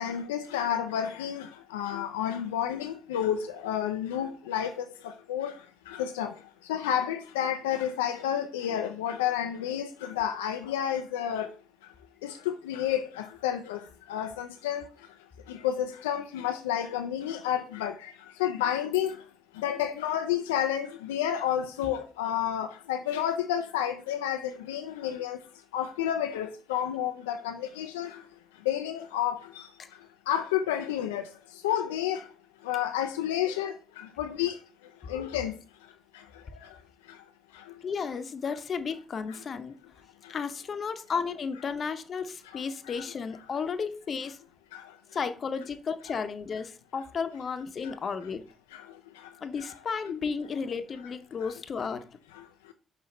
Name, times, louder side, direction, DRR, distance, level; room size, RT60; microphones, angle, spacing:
voice 1, 0.0-1.5 1.7-4.8 5.3-5.5 6.0-6.3 6.7-11.5 12.2-13.8 14.1-14.8 15.6-17.9 18.4-19.1 19.6-24.4 24.7-25.4 25.7-28.1 28.7-29.4 30.3-31.2 31.6-32.2 32.7-33.7 34.2-34.5 35.1-35.5, left 10 dB, 90° left, 0.4 m, -30 dB
voice 2, 37.8-39.8 40.3-44.4 45.1-48.4 49.4-52.1, left 5 dB, 50° left, 0.8 m, -33 dB
5.8 x 4.7 x 4.2 m
hypercardioid pair, 50°, 0 cm